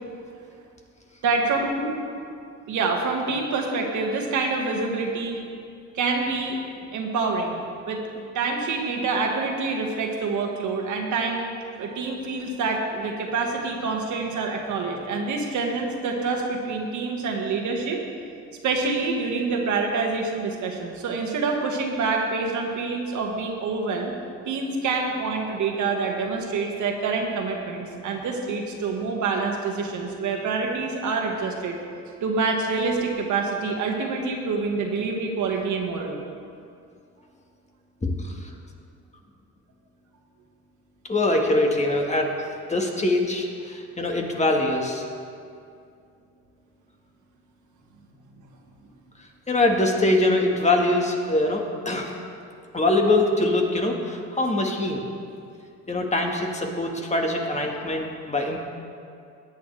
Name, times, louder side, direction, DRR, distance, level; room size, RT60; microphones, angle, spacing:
voice 1, 1.2-2.0 2.7-5.4 5.9-6.6 6.9-8.0 8.3-11.5 11.8-18.0 18.6-24.1 24.5-31.8 32.2-36.2, right 4 dB, 75° right, 1 dB, 1.7 m, -26 dB
voice 2, 38.0-38.5 41.1-45.0 49.5-52.1 52.7-55.0 55.9-58.6, left 2 dB, 20° left, 1 dB, 1.6 m, -23 dB
16.5 x 9.2 x 3.3 m, 2.4 s
cardioid pair, 90°, 30 cm